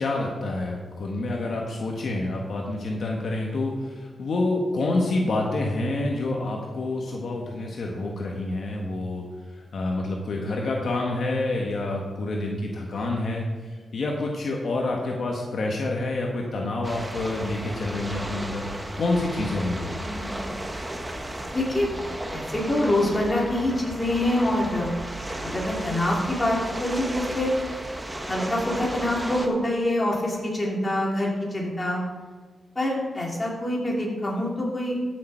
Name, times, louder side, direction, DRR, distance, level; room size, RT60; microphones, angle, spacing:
voice 1, 0.0-18.6 19.0-20.0, left 2 dB, 65° left, 0 dB, 1.4 m, -28 dB
voice 2, 10.4-10.7 20.0-20.6 21.5-22.0 22.3-24.9 25.4-27.5 28.3-32.0 32.8-35.0, left 1 dB, 25° left, -3 dB, 3.5 m, -26 dB
sound 1, 16.8-29.5, right 1 dB, 15° right, 1.3 m, -34 dB
14.0 x 6.7 x 4.5 m, 1.4 s
cardioid pair, 80°, 0 cm